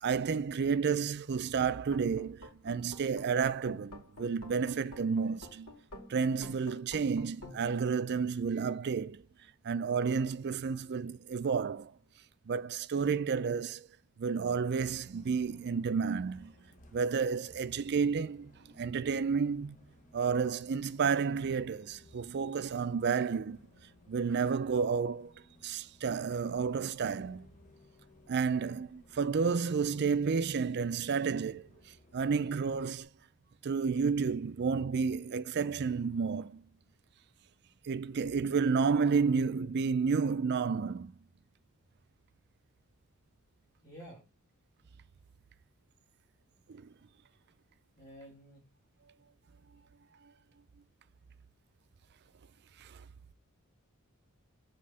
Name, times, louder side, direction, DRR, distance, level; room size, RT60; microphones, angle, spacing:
voice 1, 0.0-5.7 6.1-9.2 9.6-11.9 12.5-13.9 14.2-16.5 16.9-18.5 18.8-19.8 20.1-23.6 24.1-25.3 25.6-27.5 28.3-31.7 32.1-33.1 33.6-36.6 37.8-41.1 46.7-46.9 52.8-53.0, right 5 dB, 50° right, 0.4 m, -31 dB
sound 1, 1.9-7.8, left 1 dB, 80° left, 2.4 m, -50 dB
Bus, 14.8-33.0, left 1 dB, 35° left, 1.2 m, -61 dB
voice 2, 43.8-44.2 48.0-48.6, equal, 20° left, 2.4 m, -50 dB
7.5 x 3.6 x 5.6 m
head